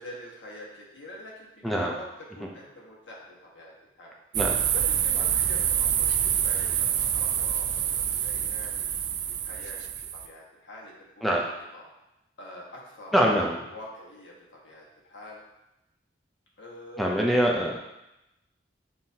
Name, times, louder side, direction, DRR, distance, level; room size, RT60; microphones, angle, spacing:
voice 1, 0.0-2.0 2.3-4.1 4.7-11.3 11.7-11.9 12.4-15.4 16.6-17.7, left 1 dB, 85° left, -4 dB, 1.3 m, -45 dB
voice 2, 1.6-1.9 4.3-4.6 11.2-11.5 13.1-13.6 17.0-17.8, equal, ahead, -2 dB, 0.4 m, -24 dB
sound 1, 4.3-10.3, right 9 dB, 65° right, 0.3 m, -26 dB
7.3 x 2.6 x 2.7 m, 0.91 s
head